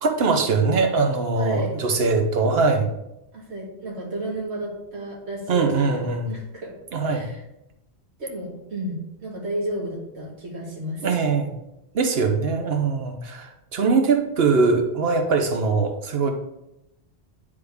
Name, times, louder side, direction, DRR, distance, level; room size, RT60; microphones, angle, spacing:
voice 1, 0.0-2.9 5.5-6.3 6.9-7.3 11.0-11.6 11.9-16.3, right 4 dB, 65° right, 5 dB, 1.1 m, -22 dB
voice 2, 1.3-1.8 3.3-6.7 7.1-7.4 8.2-11.1, right 1 dB, 85° right, -3 dB, 1.7 m, -32 dB
9.5 x 3.5 x 3.5 m, 0.87 s
omnidirectional pair, 1.1 m